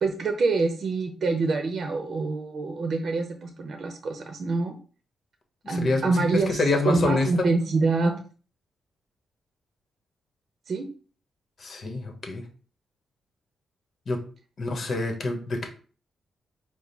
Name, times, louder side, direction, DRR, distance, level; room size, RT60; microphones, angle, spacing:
voice 1, 0.0-4.8 5.7-6.6 6.8-8.2 10.7-10.9, right 3 dB, 60° right, 5 dB, 0.7 m, -26 dB
voice 2, 5.6-7.5 11.6-12.4 14.1-14.2 14.6-15.7, left 3 dB, 50° left, 4 dB, 1.0 m, -26 dB
4.9 x 2.1 x 4.0 m, 0.40 s
cardioid pair, 75°, 0 cm